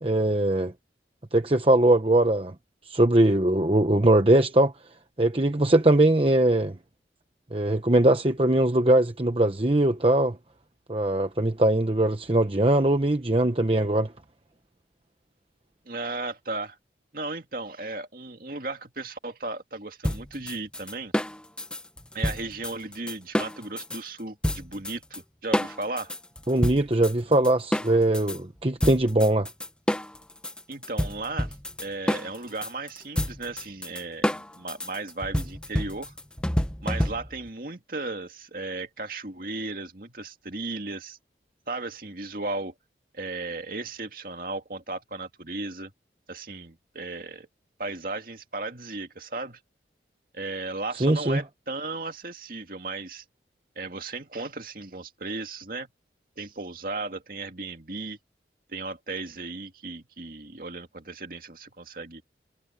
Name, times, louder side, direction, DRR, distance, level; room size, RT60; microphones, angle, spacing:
voice 1, 0.0-0.7 1.3-2.5 2.9-4.7 5.2-6.7 7.5-10.4 10.9-14.1 26.5-29.5 51.0-51.4, right 1 dB, 30° right, 1.0 m, -21 dB
voice 2, 15.8-16.8 17.1-21.1 22.1-26.1 30.7-36.1 36.8-41.2 41.7-42.7 43.1-45.9 46.3-47.5 47.8-49.6 50.3-53.2 53.8-55.9 56.4-58.2 58.7-62.2, right 3 dB, 50° right, 2.3 m, -35 dB
sound 1, 20.0-24.0 24.4-25.2 25.5-28.4 28.8-37.5, equal, 5° left, 0.8 m, -29 dB
head